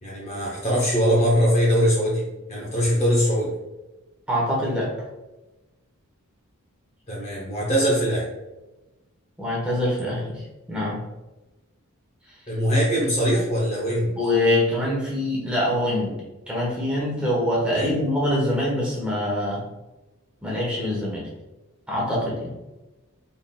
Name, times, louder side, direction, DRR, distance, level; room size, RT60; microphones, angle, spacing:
voice 1, 0.0-3.5 7.1-8.3 12.5-14.2 17.7-18.0, equal, 30° left, -3 dB, 0.7 m, -22 dB
voice 2, 4.3-5.0 9.4-11.0 14.1-16.1 16.5-19.6 20.4-21.3 21.9-22.5, left 1 dB, 5° right, -6 dB, 1.0 m, -24 dB
3.8 x 3.8 x 2.2 m, 1.1 s
head